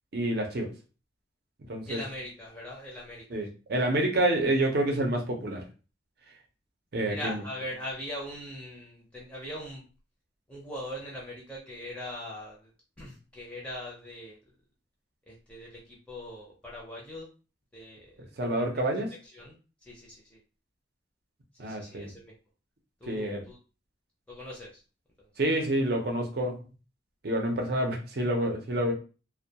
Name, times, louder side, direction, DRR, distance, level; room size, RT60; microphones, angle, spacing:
voice 1, 0.1-0.7 1.7-2.0 3.3-5.6 6.9-7.4 18.2-19.1 21.6-22.1 23.1-23.4 25.4-26.6 27.2-28.9, right 1 dB, 60° right, 2 dB, 0.6 m, -28 dB
voice 2, 1.9-3.2 7.1-9.8 10.5-12.7 13.0-14.4 15.3-17.3 17.7-18.1 19.3-19.6 19.9-20.4 21.6-22.3 23.0-23.6 24.3-24.7, left 1 dB, 5° left, -4 dB, 0.5 m, -41 dB
2.2 x 2.1 x 2.7 m, 0.34 s
head